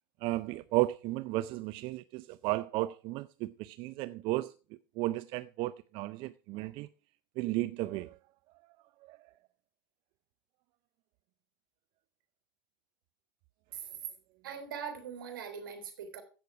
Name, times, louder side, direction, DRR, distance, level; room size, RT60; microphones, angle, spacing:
voice 1, 0.2-4.5 5.0-6.9 7.4-8.2 9.0-9.2, right 18 dB, 50° right, 0.5 m, -34 dB
voice 2, 14.4-16.2, right 7 dB, 75° right, 3.4 m, -41 dB
15.0 x 6.4 x 4.7 m
hypercardioid pair, 90°, 11 cm